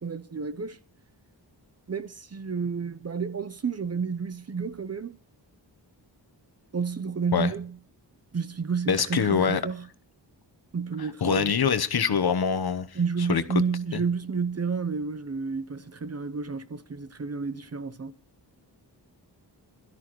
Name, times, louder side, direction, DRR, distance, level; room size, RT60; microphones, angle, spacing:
voice 1, 0.0-0.8 1.9-5.2 6.7-7.8 8.3-9.9 10.7-11.6 12.9-18.1, right 5 dB, 35° right, 0.7 m, -31 dB
voice 2, 8.9-9.6 11.2-12.9 13.3-13.4 13.9-14.0, left 6 dB, 60° left, 1.0 m, -24 dB
21.5 x 12.5 x 3.1 m
wide cardioid pair, 120°, 43 cm